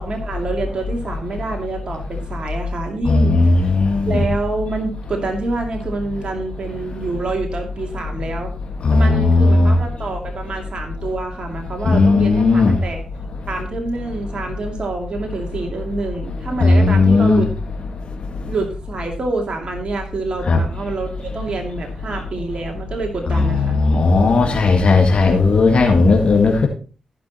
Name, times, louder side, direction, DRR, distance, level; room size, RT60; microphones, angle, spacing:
voice 1, 0.0-3.7 4.1-8.5 8.9-13.0 13.5-17.5 18.4-23.8, right 3 dB, 55° right, 2.5 m, -27 dB
voice 2, 3.1-4.2 8.8-9.7 11.9-12.7 16.6-17.4 20.5-20.6 23.3-26.7, left 3 dB, 60° left, 2.0 m, -15 dB
15.0 x 6.0 x 4.3 m
supercardioid pair, 45°, 2 cm